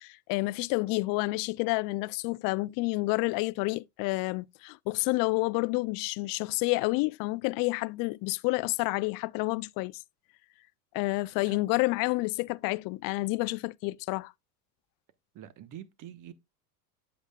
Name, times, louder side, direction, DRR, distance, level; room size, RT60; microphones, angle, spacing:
voice 1, 0.0-10.0 10.9-14.3, left 23 dB, 45° left, 0.5 m, -29 dB
voice 2, 15.3-16.3, right 11 dB, 40° right, 1.1 m, -46 dB
8.5 x 7.9 x 2.2 m
hypercardioid pair, 100°, 47 cm